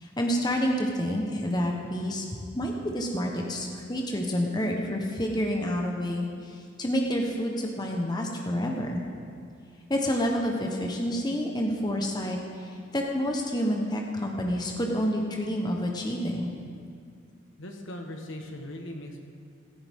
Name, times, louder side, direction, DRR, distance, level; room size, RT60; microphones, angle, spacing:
voice 1, 0.0-2.2 2.5-9.0 9.9-16.5, equal, 20° left, 1 dB, 1.0 m, -28 dB
voice 2, 17.6-19.2, left 1 dB, 75° left, 3 dB, 1.4 m, -39 dB
16.0 x 14.5 x 3.7 m, 2.2 s
head